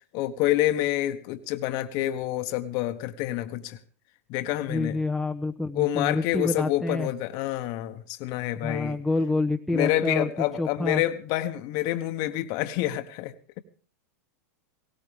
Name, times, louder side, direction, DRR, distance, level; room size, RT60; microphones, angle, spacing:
voice 1, 0.1-3.8 4.3-5.0 5.7-9.0 9.7-13.6, left 14 dB, 50° left, 8 dB, 1.2 m, -28 dB
voice 2, 4.7-7.1 8.5-10.3 10.6-11.0, left 2 dB, ahead, 2 dB, 0.9 m, -27 dB
18.5 x 18.0 x 3.5 m, 0.41 s
hypercardioid pair, 110°, 9 cm